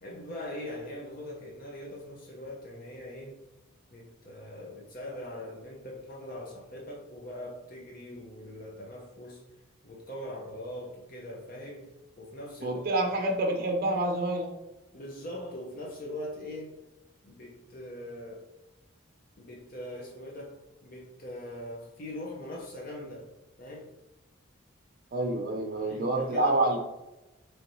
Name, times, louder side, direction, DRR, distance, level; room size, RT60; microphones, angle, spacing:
voice 1, 0.0-3.4 3.9-9.4 9.8-12.8 14.9-16.7 17.2-18.4 19.4-23.3 23.6-23.9 25.8-26.6, left 1 dB, 40° left, 0.6 m, -41 dB
voice 2, 12.6-14.5 25.1-26.8, right 2 dB, 45° right, 0.5 m, -27 dB
3.9 x 3.1 x 3.0 m
head